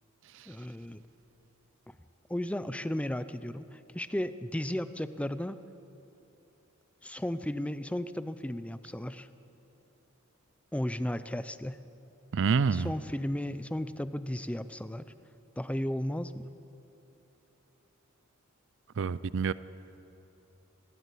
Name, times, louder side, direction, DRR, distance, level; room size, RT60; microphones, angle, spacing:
voice 1, 0.5-1.0 1.9-2.0 2.3-5.6 7.0-9.3 10.7-11.8 12.7-15.1 15.6-16.5, left 1 dB, 5° left, 13 dB, 0.5 m, -34 dB
voice 2, 12.3-12.9 19.0-19.5, right 5 dB, 60° right, 17 dB, 0.4 m, -27 dB
21.5 x 15.5 x 8.4 m, 3.0 s
head